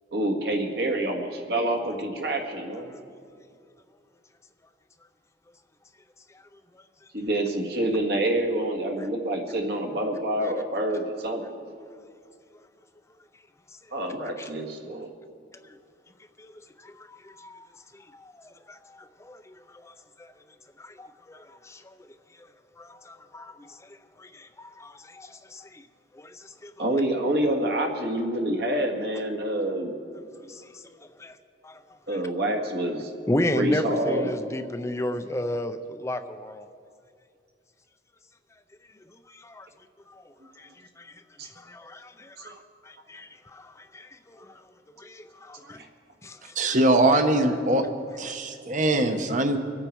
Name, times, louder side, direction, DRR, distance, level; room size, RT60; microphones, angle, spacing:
voice 1, 0.1-2.9 7.1-11.4 13.9-15.1 26.8-29.9 32.1-33.1 33.5-34.5 41.4-41.5 42.4-42.5 45.6-45.9, right 1 dB, 65° right, 2 dB, 1.9 m, -27 dB
voice 2, 16.8-17.7 17.9-20.3 20.8-21.9 22.4-22.5 22.8-23.8 24.2-25.8 26.1-26.7 30.4-30.8 31.2-31.4 31.6-31.8 32.1-32.2 33.3-36.7 39.3-39.7 40.1-40.2 40.6-41.1 41.6-42.6 42.8-44.5 45.0-45.8 46.2-46.6 47.0-47.1 48.3-48.4, left 1 dB, 15° left, 8 dB, 0.5 m, -34 dB
voice 3, 46.6-47.8 48.2-49.6, right 1 dB, 45° right, 6 dB, 1.0 m, -22 dB
25.5 x 8.8 x 4.6 m, 2.3 s
head